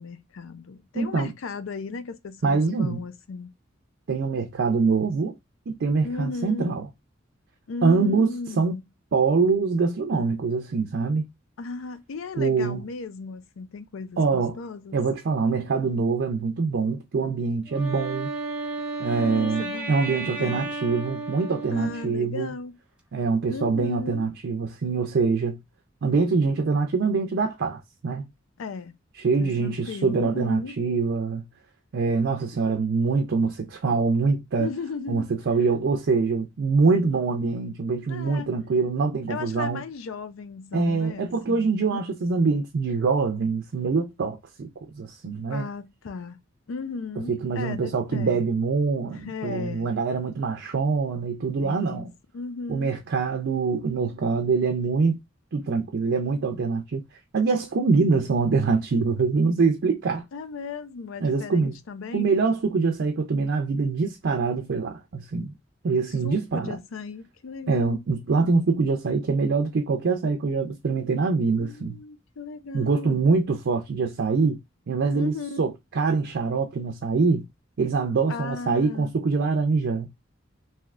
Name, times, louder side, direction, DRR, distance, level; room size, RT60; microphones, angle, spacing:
voice 1, 0.0-3.5 6.0-6.8 7.7-8.8 11.6-15.1 19.0-20.7 21.7-22.8 23.5-24.3 28.6-28.9 29.4-30.8 34.6-35.3 38.1-38.5 39.3-42.0 45.5-46.4 46.7-48.4 49.1-49.9 51.6-52.1 52.3-53.0 60.3-62.3 66.2-68.0 71.6-73.3 75.1-75.6 78.3-79.1, left 4 dB, 90° left, 0.5 m, -36 dB
voice 2, 0.9-1.3 2.4-3.0 4.1-5.4 5.7-6.8 7.8-8.7 9.1-11.2 12.4-12.8 14.2-14.6 14.9-18.3 19.0-22.5 23.1-25.6 26.0-28.2 29.2-31.5 31.9-34.7 35.1-39.8 40.7-44.7 44.9-45.7 47.3-52.1 52.7-55.2 55.5-57.0 57.3-60.3 61.2-61.7 62.1-65.5 65.8-66.8 67.7-72.0 72.7-74.6 74.9-77.5 77.8-80.1, right 4 dB, 60° right, 0.4 m, -24 dB
Wind instrument woodwind instrument, 17.7-22.4, right 3 dB, 5° right, 0.7 m, -33 dB
3.3 x 2.7 x 2.4 m
head